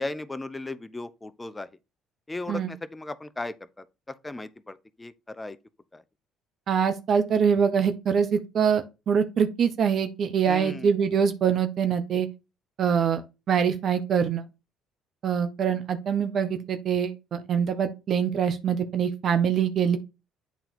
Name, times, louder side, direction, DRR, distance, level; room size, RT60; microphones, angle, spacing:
voice 1, 0.0-1.7 2.3-3.6 4.2-5.6 5.9-6.0 10.5-10.9, left 2 dB, 20° left, 0.7 m, -36 dB
voice 2, 6.7-12.3 12.8-14.4 15.2-20.0, right 7 dB, 50° right, 0.9 m, -24 dB
8.3 x 3.9 x 4.3 m
hypercardioid pair, 55°, 0 cm